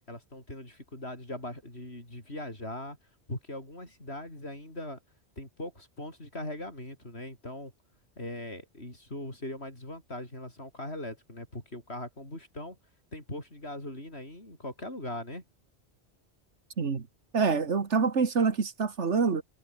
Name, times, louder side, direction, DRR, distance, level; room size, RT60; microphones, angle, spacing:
voice 1, 0.1-3.0 3.3-5.0 5.4-7.7 8.2-12.8 13.1-15.4, left 1 dB, 65° left, 7.8 m, -40 dB
voice 2, 17.3-19.4, right 5 dB, 90° right, 2.1 m, -26 dB
omnidirectional pair, 1.2 m